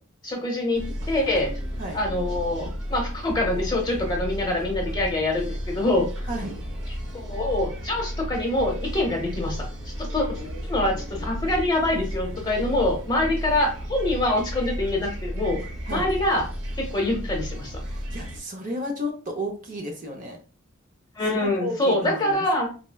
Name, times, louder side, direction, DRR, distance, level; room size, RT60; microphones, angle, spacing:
voice 1, 0.2-1.5 1.9-6.1 7.1-9.6 10.0-10.4 10.7-15.6 15.9-16.4 16.8-17.7 21.2-22.7, left 1 dB, 20° left, 0 dB, 0.8 m, -25 dB
sound 1, 0.7-18.4, equal, 65° right, 0.9 m, -33 dB
voice 2, 17.8-20.4 21.3-22.4, equal, 40° right, 2 dB, 0.6 m, -33 dB
4.0 x 2.2 x 2.2 m, 0.36 s
head